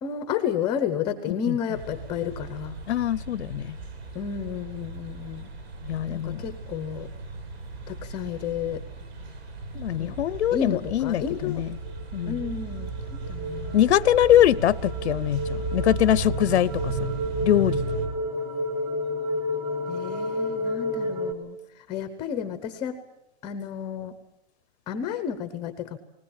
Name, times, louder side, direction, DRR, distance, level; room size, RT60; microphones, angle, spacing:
voice 1, 0.0-2.7 4.1-5.5 6.1-7.1 7.9-8.8 10.0-10.2 10.5-11.6 12.3-13.9 19.9-21.6 21.9-23.0 23.4-24.1 24.9-26.0, left 8 dB, 15° left, 0.8 m, -31 dB
sound 1, 1.7-18.1, right 3 dB, 70° right, 6.4 m, -36 dB
voice 2, 2.9-3.8 5.8-6.4 9.7-11.7 12.1-12.4 13.7-16.9 17.4-17.9, left 12 dB, 80° left, 0.7 m, -23 dB
sound 2, 11.7-21.3, left 1 dB, 10° right, 1.6 m, -31 dB
20.0 x 20.0 x 8.8 m
hypercardioid pair, 170°, 33 cm